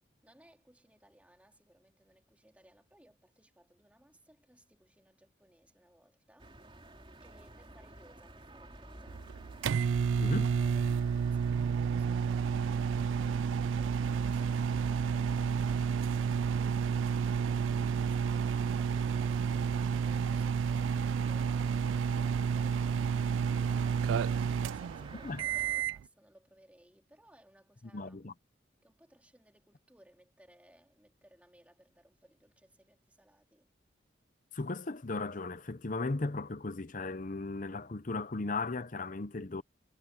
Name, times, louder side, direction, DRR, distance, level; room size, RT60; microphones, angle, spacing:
voice 1, 0.2-6.8 7.2-9.3 24.1-28.2 28.8-33.7, right 1 dB, 5° right, 3.1 m, -63 dB
sound 1, 6.4-25.8, right 1 dB, 25° right, 3.3 m, -51 dB
sound 2, 9.1-26.0, right 6 dB, 85° right, 0.3 m, -30 dB
voice 2, 27.9-28.3 34.5-39.6, left 3 dB, 40° left, 0.8 m, -36 dB
head